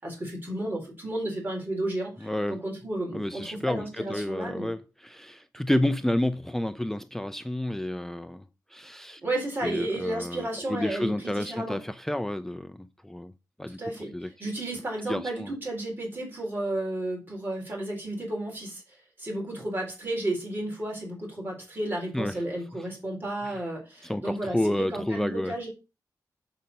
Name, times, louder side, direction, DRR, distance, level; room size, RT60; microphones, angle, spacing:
voice 1, 0.0-4.7 9.2-11.8 13.7-14.1 14.4-18.8 19.2-25.7, right 1 dB, 25° right, 4.2 m, -32 dB
voice 2, 2.2-2.6 3.1-9.2 9.6-13.3 13.6-13.8 14.1-14.3 15.1-15.5 22.1-22.4 22.7-22.9 23.4-23.6 24.0-25.7, left 1 dB, 5° left, 0.4 m, -30 dB
7.4 x 5.7 x 5.3 m
wide cardioid pair, 120°, 7 cm